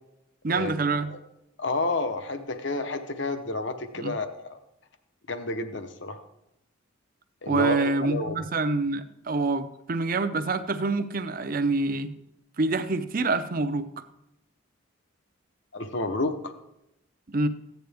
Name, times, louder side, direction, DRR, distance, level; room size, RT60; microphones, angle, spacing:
voice 1, 0.4-1.1 4.0-4.1 7.5-12.1 12.6-13.9 17.3-17.5, right 3 dB, 45° right, 11 dB, 0.6 m, -26 dB
voice 2, 1.6-4.6 5.3-6.2 7.4-8.4 15.7-16.3, left 3 dB, 60° left, 8 dB, 0.9 m, -30 dB
15.0 x 9.2 x 3.5 m, 0.85 s
head